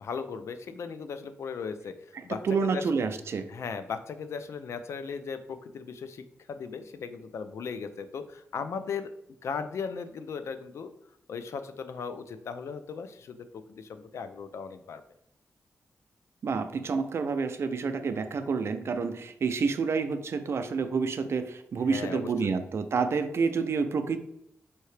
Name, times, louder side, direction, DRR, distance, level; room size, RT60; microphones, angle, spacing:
voice 1, 0.0-1.9 2.2-2.8 3.5-9.1 9.4-10.9 11.3-15.0 21.8-22.5, left 5 dB, 80° left, 9 dB, 0.4 m, -37 dB
voice 2, 2.1-3.5 16.4-24.2, right 5 dB, 65° right, 9 dB, 0.4 m, -29 dB
4.4 x 2.8 x 3.2 m, 0.77 s
cardioid pair, 75°, 5 cm